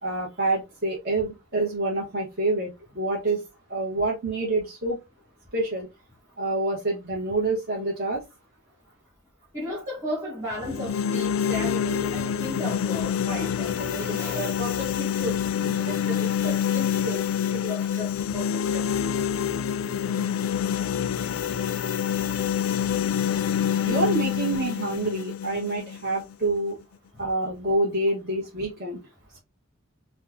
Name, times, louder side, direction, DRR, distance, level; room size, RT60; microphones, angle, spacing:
voice 1, 0.0-2.7 2.9-3.4 3.7-5.0 5.5-5.9 6.4-8.2 23.8-26.8 27.2-29.0, right 2 dB, 50° right, 1.2 m, -27 dB
voice 2, 9.5-17.2 17.5-18.4 18.7-18.9 23.7-23.9, equal, 15° right, 2.2 m, -34 dB
sound 1, 10.5-26.6, left 8 dB, 75° left, 0.3 m, -27 dB
5.4 x 2.4 x 2.6 m
head